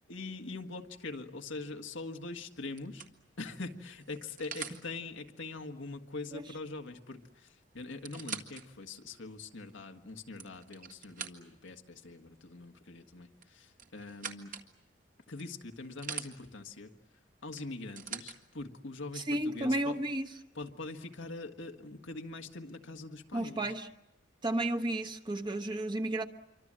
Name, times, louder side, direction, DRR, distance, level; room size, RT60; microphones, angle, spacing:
voice 1, 0.1-3.1 3.4-14.6 15.3-16.9 17.4-20.0 20.5-23.7, left 3 dB, 85° left, 1.7 m, -43 dB
sound 1, 1.9-2.2 2.8-4.8 6.9-7.0 7.2-7.3 7.8-8.6 9.2-9.3 10.1-11.7 13.4-14.7 15.4-16.3 17.5-18.4 19.3-19.4, right 6 dB, 45° right, 1.8 m, -44 dB
voice 2, 19.2-20.3 23.3-23.9 24.4-26.3, right 1 dB, 25° right, 1.2 m, -32 dB
27.0 x 24.5 x 7.6 m
head